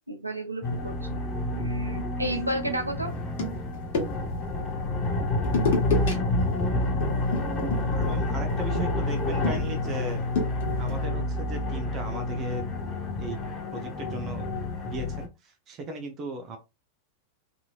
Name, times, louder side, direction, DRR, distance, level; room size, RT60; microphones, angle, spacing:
voice 1, 0.1-1.2 1.5-3.1, right 1 dB, 85° right, 0.5 m, -32 dB
sound 1, 0.6-15.3, left 2 dB, 25° left, 0.7 m, -29 dB
sound 2, 3.0-4.4 5.4-6.1 6.4-6.7 7.0-11.0, left 3 dB, 55° left, 1.0 m, -31 dB
voice 2, 7.9-10.2 10.8-12.7 13.2-13.4 13.7-14.5 14.8-16.6, right 1 dB, 30° right, 0.7 m, -37 dB
2.9 x 2.6 x 2.4 m
figure-of-eight pair, 90°, 0 cm